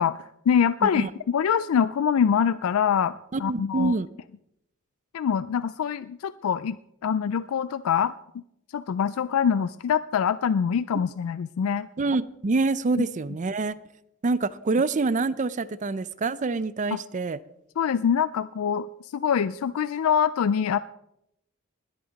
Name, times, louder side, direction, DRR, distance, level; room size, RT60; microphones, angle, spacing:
voice 1, 0.0-3.9 5.1-6.8 7.0-8.1 8.7-11.9 16.9-17.0 17.8-18.9 19.1-20.8, left 7 dB, 80° left, 16 dB, 0.4 m, -24 dB
voice 2, 3.3-4.1 12.0-13.8 14.2-17.4, right 3 dB, 35° right, 17 dB, 0.5 m, -26 dB
20.5 x 8.7 x 4.0 m, 0.80 s
head